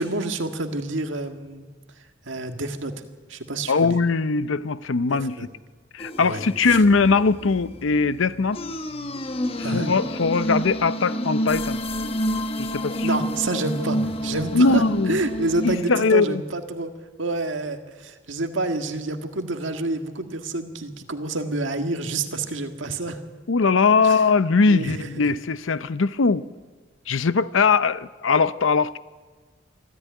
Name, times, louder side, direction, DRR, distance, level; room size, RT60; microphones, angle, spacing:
voice 1, 0.0-1.7 2.3-2.9 3.3-4.0 5.1-5.5 6.2-6.4 9.6-9.9 13.0-16.9 17.2-23.2 24.0-24.2 24.7-25.3, right 2 dB, 75° right, 1.8 m, -28 dB
voice 2, 3.7-5.4 5.9-8.6 9.6-11.8 12.6-13.1 14.5-15.2 15.9-16.4 23.5-26.4 27.1-29.0, left 4 dB, 80° left, 0.7 m, -20 dB
sound 1, 6.0-15.8, equal, 30° left, 1.1 m, -29 dB
24.5 x 14.0 x 9.4 m
head